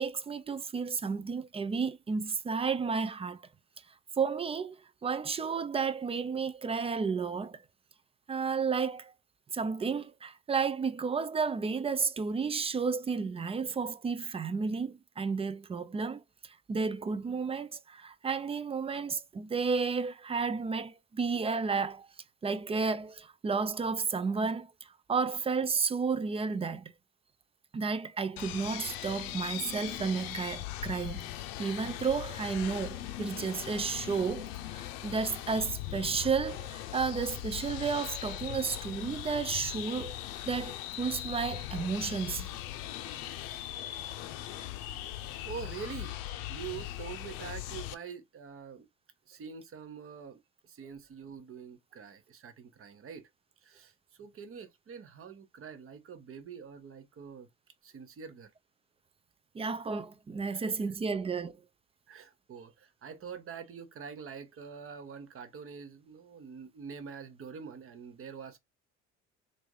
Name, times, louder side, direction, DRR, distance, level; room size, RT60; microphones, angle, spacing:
voice 1, 0.0-3.4 4.2-4.8 5.0-7.6 8.3-9.1 9.5-22.1 22.4-24.7 25.1-26.9 27.7-31.2 31.6-40.2 40.5-42.5 59.5-61.6, right 5 dB, 15° right, 0.4 m, -32 dB
sound 1, 28.4-47.9, left 14 dB, 65° left, 0.6 m, -40 dB
voice 2, 45.4-46.1 46.5-48.9 49.3-53.3 53.6-57.5 57.8-58.5 62.1-68.6, right 6 dB, 35° right, 1.0 m, -45 dB
3.3 x 2.6 x 3.1 m
hypercardioid pair, 60°, 36 cm